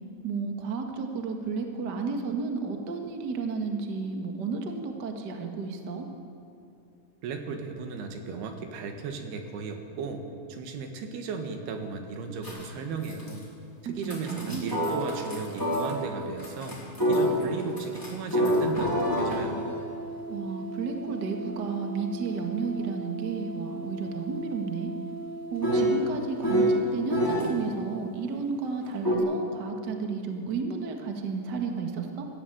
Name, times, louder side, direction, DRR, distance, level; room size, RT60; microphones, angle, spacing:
voice 1, 0.2-6.0 13.8-14.7 20.3-24.9 25.5-32.3, right 5 dB, 50° right, 3 dB, 1.2 m, -32 dB
voice 2, 7.2-10.2 10.5-13.4 13.8-16.8 17.1-19.8, right 4 dB, 70° right, 5 dB, 3.5 m, -35 dB
sound 1, 12.4-12.7 13.0-13.4 14.0-16.0 16.4-27.5 29.0-29.2, equal, 5° left, 3.4 m, -29 dB
21.0 x 14.5 x 9.3 m, 2.6 s
omnidirectional pair, 4.8 m